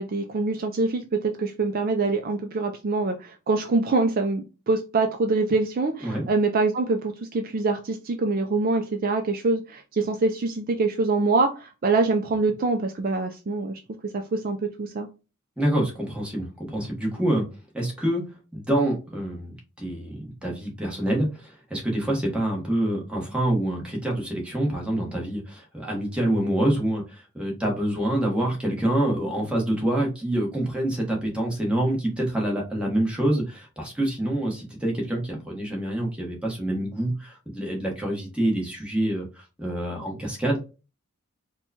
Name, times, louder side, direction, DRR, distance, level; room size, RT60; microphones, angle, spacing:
voice 1, 0.0-13.8 14.1-15.1, right 3 dB, 40° right, 5 dB, 0.4 m, -25 dB
voice 2, 15.6-17.4 17.7-18.2 18.5-40.6, right 1 dB, 5° right, -1 dB, 1.1 m, -26 dB
4.5 x 2.2 x 2.8 m, 0.30 s
head